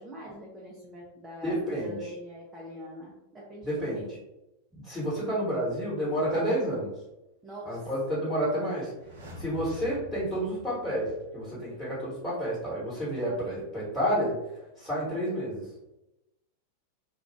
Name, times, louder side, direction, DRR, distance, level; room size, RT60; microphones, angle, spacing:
voice 1, 0.0-4.1 7.4-7.9, equal, 15° right, -5 dB, 0.6 m, -44 dB
voice 2, 1.4-2.0 3.6-4.0 4.8-6.9 7.7-8.9 9.4-14.3 14.8-15.6, equal, 5° left, -11 dB, 1.4 m, -30 dB
sound 1, 8.9-11.7 12.0-12.1, left 2 dB, 60° right, 0.6 m, -45 dB
2.4 x 2.4 x 3.1 m, 0.95 s
figure-of-eight pair, 90°, 0 cm